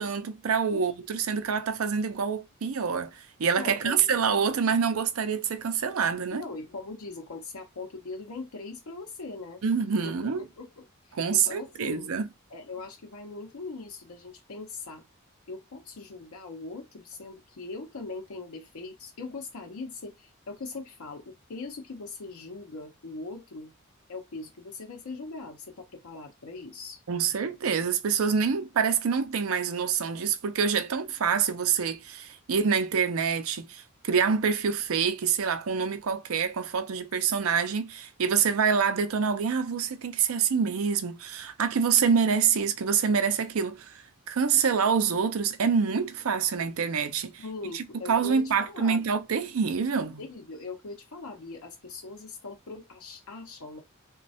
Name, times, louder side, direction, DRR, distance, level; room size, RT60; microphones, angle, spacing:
voice 1, 0.0-6.4 9.6-10.4 11.1-12.3 27.1-47.4 47.7-50.2, right 6 dB, 75° right, 0.5 m, -26 dB
voice 2, 3.6-4.1 6.3-9.6 10.0-10.1 10.6-12.1 12.5-15.0 15.5-23.7 24.1-27.0 47.4-49.0 50.2-53.8, left 3 dB, 85° left, 0.6 m, -40 dB
3.1 x 2.2 x 2.7 m
head